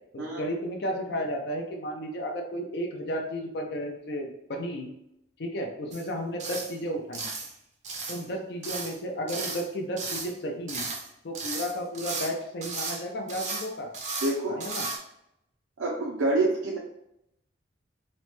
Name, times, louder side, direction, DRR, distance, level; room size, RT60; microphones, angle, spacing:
voice 1, 0.1-4.9 5.4-7.3 8.1-10.9 11.2-13.9 14.5-14.8, equal, 60° left, 2 dB, 0.4 m, -33 dB
sound 1, 5.9-6.1 6.4-6.7 7.1-7.5 7.8-8.2 8.6-9.0 9.3-9.7 10.0-10.3 10.7-11.1 11.3-12.3 12.6-13.0 13.3-13.7 13.9-14.3 14.6-15.0, right 4 dB, 40° right, 0.5 m, -34 dB
voice 2, 14.2-14.6 15.8-16.8, right 2 dB, 90° right, -4 dB, 0.5 m, -26 dB
3.0 x 2.1 x 3.0 m, 0.80 s
head